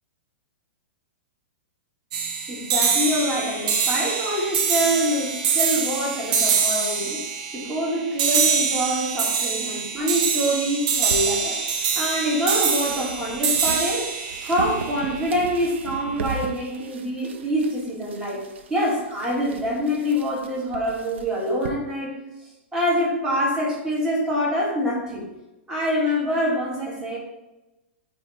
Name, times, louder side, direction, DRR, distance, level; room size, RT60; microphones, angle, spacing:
sound 1, 2.1-15.6, right 6 dB, 45° right, 0.9 m, -24 dB
voice 1, 2.5-7.3 7.5-11.6 11.9-14.1 14.4-18.4 18.7-22.1 22.7-25.3 25.7-27.2, equal, 10° right, -5 dB, 1.9 m, -25 dB
sound 2, 11.0-21.7, right 5 dB, 80° right, 0.8 m, -38 dB
8.7 x 3.1 x 4.2 m, 1.0 s
hypercardioid pair, 165°, 6 cm